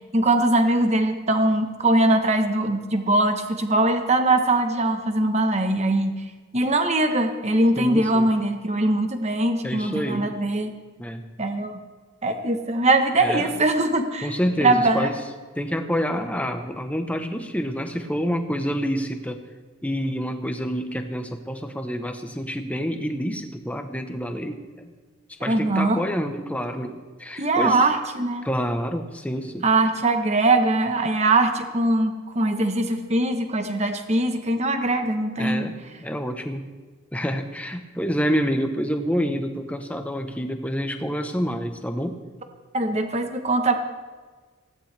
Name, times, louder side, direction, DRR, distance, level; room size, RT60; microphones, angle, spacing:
voice 1, 0.1-6.2 6.5-10.7 11.4-11.8 12.2-14.3 14.6-15.1 25.5-26.0 27.4-28.5 29.6-35.7 42.7-43.7, right 2 dB, 30° right, 6 dB, 1.3 m, -21 dB
voice 2, 7.8-8.3 9.6-10.4 11.0-11.2 13.2-13.5 14.2-15.2 15.6-19.4 19.8-24.9 25.4-27.9 28.4-29.7 35.4-36.6 37.1-42.2, equal, 5° left, 6 dB, 1.0 m, -28 dB
19.5 x 16.0 x 3.5 m, 1.4 s
head